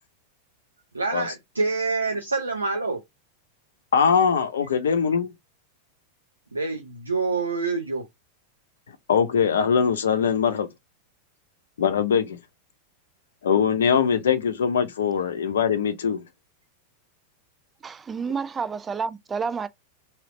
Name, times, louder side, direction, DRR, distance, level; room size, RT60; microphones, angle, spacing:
voice 1, 0.9-3.0 6.5-8.0, right 3 dB, 80° right, 0.6 m, -26 dB
voice 2, 3.9-5.3 9.1-10.7 11.8-12.4 13.4-16.2, left 7 dB, 65° left, 0.6 m, -22 dB
voice 3, 17.8-19.7, right 5 dB, 20° right, 0.4 m, -29 dB
3.2 x 2.9 x 3.6 m
figure-of-eight pair, 90°, 0 cm